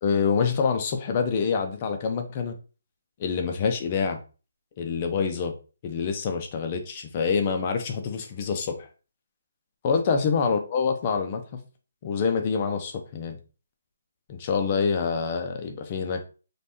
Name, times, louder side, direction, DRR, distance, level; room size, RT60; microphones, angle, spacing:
voice 1, 0.0-2.5 3.2-4.2 4.8-5.5 5.8-8.9 9.8-11.6 12.0-13.4 14.3-16.3, left 5 dB, 20° left, 5 dB, 0.3 m, -26 dB
5.2 x 2.2 x 2.9 m, 0.34 s
hypercardioid pair, 180°, 0 cm